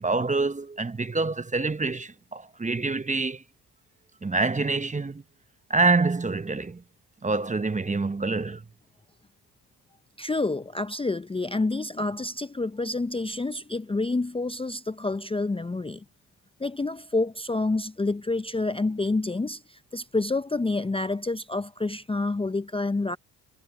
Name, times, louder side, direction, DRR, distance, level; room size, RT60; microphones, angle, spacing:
voice 1, 0.0-3.4 4.2-5.2 5.7-6.8 7.2-8.6, right 3 dB, 15° right, 0.9 m, -26 dB
voice 2, 10.2-16.0 16.6-23.2, left 2 dB, 10° left, 0.7 m, -28 dB
supercardioid pair, 60°, 45 cm